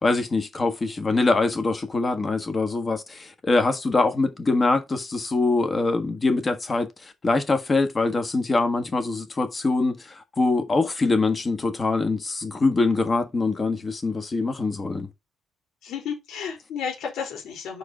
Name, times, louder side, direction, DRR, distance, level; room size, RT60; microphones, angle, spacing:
voice 1, 0.0-15.1, left 3 dB, 20° left, 1.4 m, -24 dB
voice 2, 15.8-17.8, left 7 dB, 70° left, 3.5 m, -32 dB
5.0 x 4.8 x 5.9 m
cardioid pair, 160°, 0 cm